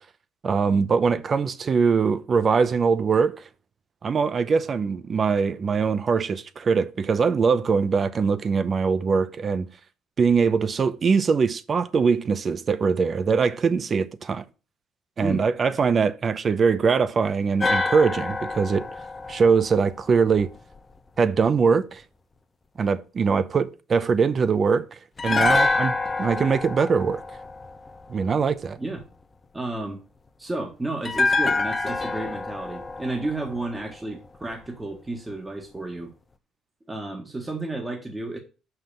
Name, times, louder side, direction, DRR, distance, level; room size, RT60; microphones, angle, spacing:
voice 1, 0.4-3.4 4.0-9.7 10.2-14.4 15.2-18.9 19.3-20.5 21.2-22.0 22.8-27.2 28.1-28.8, right 5 dB, 35° right, 0.8 m, -22 dB
sound 1, 17.6-20.8 25.2-28.4 31.0-34.3 34.5-34.7, left 3 dB, 25° left, 0.8 m, -27 dB
voice 2, 29.5-30.0 30.4-36.1 36.9-38.4, right 2 dB, 15° right, 1.6 m, -32 dB
5.8 x 5.7 x 6.9 m
cardioid pair, 110°, 0 cm